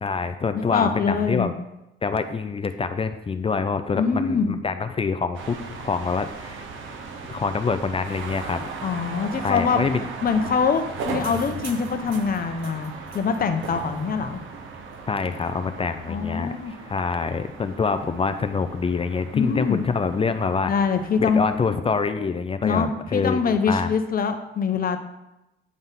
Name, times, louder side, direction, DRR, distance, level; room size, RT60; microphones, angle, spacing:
voice 1, 0.0-1.5 2.0-6.6 7.3-8.7 9.4-10.1 15.1-20.7 21.2-23.9, left 5 dB, 30° left, 9 dB, 0.5 m, -26 dB
voice 2, 0.5-1.5 3.9-4.6 8.8-9.8 10.2-14.4 16.1-16.7 19.3-19.8 20.7-21.4 22.6-25.0, left 5 dB, 45° left, 7 dB, 0.9 m, -24 dB
sound 1, 5.3-21.8, right 4 dB, 75° right, 1.0 m, -37 dB
9.5 x 3.5 x 5.7 m, 0.92 s
cardioid pair, 90°, 20 cm